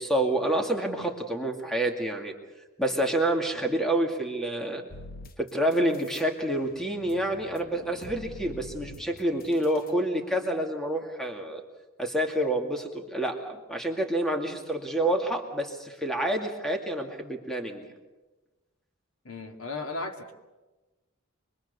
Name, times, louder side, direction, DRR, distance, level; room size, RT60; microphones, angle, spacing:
voice 1, 0.0-2.3 2.8-4.8 5.4-11.6 12.0-17.9, right 1 dB, ahead, 3 dB, 2.2 m, -28 dB
sound 1, 4.9-6.3 6.6-9.9, left 2 dB, 40° left, 0.9 m, -46 dB
voice 2, 19.2-20.3, left 2 dB, 75° left, 4 dB, 2.5 m, -36 dB
25.5 x 22.0 x 6.8 m, 1.2 s
head